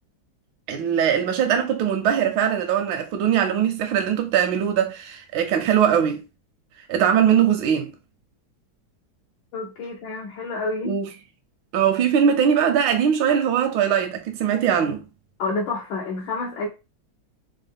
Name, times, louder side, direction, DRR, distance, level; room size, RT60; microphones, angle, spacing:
voice 1, 0.7-6.2 6.9-7.9 10.8-11.1 11.7-15.0, right 8 dB, 80° right, 1.3 m, -21 dB
voice 2, 9.5-11.0 15.4-16.7, left 3 dB, 75° left, 1.3 m, -29 dB
4.1 x 2.0 x 3.4 m
omnidirectional pair, 2.1 m